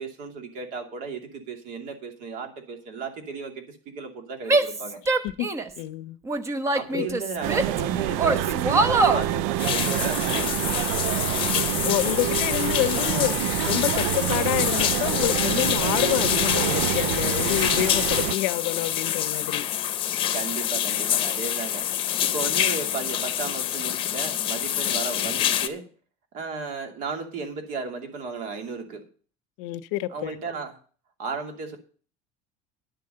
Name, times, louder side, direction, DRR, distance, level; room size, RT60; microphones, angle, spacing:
voice 1, 0.0-5.0 6.7-10.8 20.3-21.9 22.2-25.9 26.3-29.0 30.1-30.7 31.2-31.8, right 4 dB, 55° right, 2.6 m, -34 dB
Female speech woman speaking / Yell, 4.5-5.8 6.3-7.8 8.2-9.3, right 3 dB, 20° right, 1.0 m, -23 dB
voice 2, 5.8-6.2 6.9-7.1 11.8-19.6 29.6-30.4, left 16 dB, 85° left, 0.7 m, -28 dB
sound 1, 7.4-18.4, right 14 dB, 75° right, 0.4 m, -27 dB
sound 2, 9.6-25.7, left 11 dB, 35° left, 0.9 m, -26 dB
10.5 x 6.7 x 6.7 m
cardioid pair, 155°, 15 cm